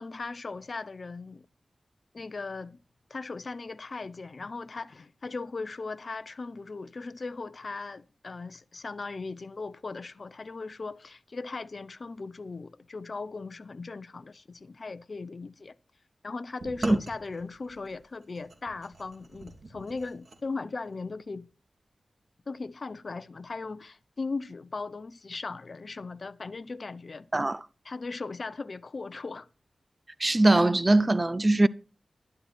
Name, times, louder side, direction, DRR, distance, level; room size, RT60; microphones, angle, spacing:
voice 1, 0.0-1.4 2.1-2.8 3.1-15.7 16.2-21.5 22.5-27.3 27.8-29.5, left 3 dB, 55° left, 0.8 m, -38 dB
sound 1, 16.6-20.4, right 2 dB, 70° right, 2.9 m, -44 dB
voice 2, 30.2-31.7, right 2 dB, 30° right, 0.5 m, -21 dB
12.0 x 11.5 x 4.4 m
cardioid pair, 65°, 0 cm